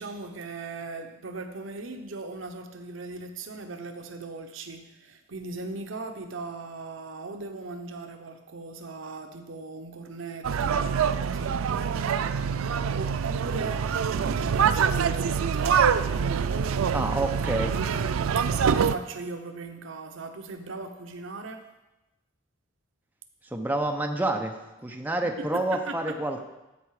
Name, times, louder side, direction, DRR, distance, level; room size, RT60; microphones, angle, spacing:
voice 1, 0.0-12.3 12.7-13.9 14.4-21.6 25.2-26.2, right 3 dB, 70° right, 6 dB, 0.8 m, -39 dB
sound 1, 10.4-19.0, right 7 dB, 90° right, 0.4 m, -25 dB
voice 2, 16.9-17.8 23.5-24.5 24.8-26.4, right 1 dB, 10° right, 2 dB, 0.7 m, -28 dB
14.0 x 4.7 x 4.8 m, 0.99 s
head